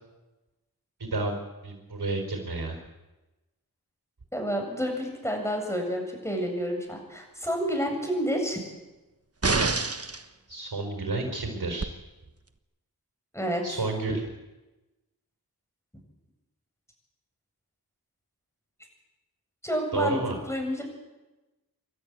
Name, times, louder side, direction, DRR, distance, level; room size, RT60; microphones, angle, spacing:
voice 1, 1.0-1.4 1.6-2.8 10.5-11.9 13.6-14.2 19.9-20.4, right 3 dB, 80° right, 3 dB, 4.6 m, -30 dB
voice 2, 4.3-8.6 13.3-13.6 19.6-20.2 20.4-20.8, equal, 5° left, 2 dB, 7.7 m, -29 dB
sound 1, 9.4-10.2 11.8-11.9, right 3 dB, 40° right, 1.3 m, -26 dB
28.0 x 12.5 x 9.0 m, 1.1 s
wide cardioid pair, 45°, 38 cm